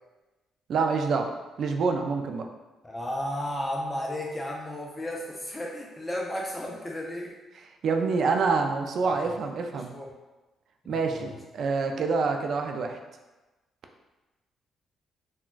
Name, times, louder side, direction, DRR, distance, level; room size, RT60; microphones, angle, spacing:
voice 1, 0.7-1.3 1.6-2.5 7.8-9.9 10.9-13.0, right 4 dB, 60° right, 4 dB, 0.3 m, -26 dB
voice 2, 2.8-7.3 9.0-9.3 9.7-10.1 11.1-11.3, left 1 dB, 20° left, -2 dB, 0.4 m, -33 dB
3.7 x 2.2 x 2.4 m, 1.1 s
cardioid pair, 90°, 0 cm